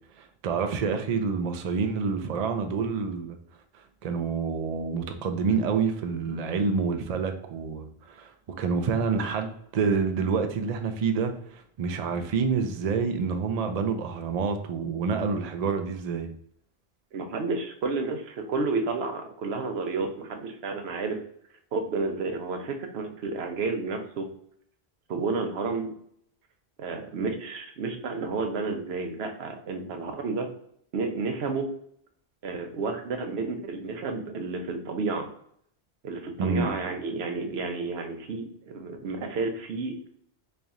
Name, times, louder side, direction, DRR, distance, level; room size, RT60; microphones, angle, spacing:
voice 1, 0.2-3.4 4.0-8.3 8.6-16.3 36.4-36.7, right 5 dB, 50° right, 6 dB, 0.5 m, -28 dB
voice 2, 17.1-21.2 21.7-24.3 25.1-25.9 26.8-30.5 30.9-31.7 32.4-35.3 36.0-40.1, right 3 dB, 75° right, 5 dB, 0.9 m, -31 dB
3.2 x 2.4 x 3.9 m, 0.66 s
omnidirectional pair, 1.1 m